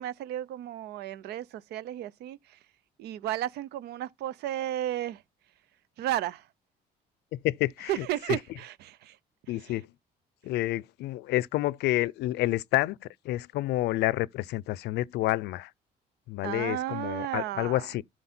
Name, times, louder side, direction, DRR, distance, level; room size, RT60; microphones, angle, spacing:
voice 1, 0.0-2.6 3.0-5.2 6.0-6.5 7.9-9.2 16.4-17.9, right 12 dB, 75° right, 0.7 m, -33 dB
voice 2, 7.3-8.4 9.5-9.9 10.4-13.0 13.2-15.7 16.3-18.0, left 16 dB, 80° left, 0.5 m, -29 dB
12.5 x 4.8 x 4.4 m
cardioid pair, 110°, 17 cm